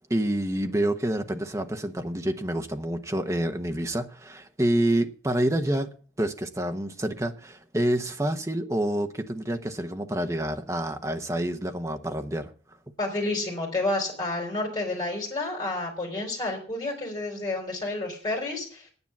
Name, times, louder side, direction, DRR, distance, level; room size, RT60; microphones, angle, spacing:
voice 1, 0.1-5.9 6.2-12.5, right 1 dB, 15° right, 0.9 m, -28 dB
voice 2, 13.0-18.9, left 2 dB, 20° left, 4.8 m, -30 dB
9.7 x 8.9 x 7.2 m
head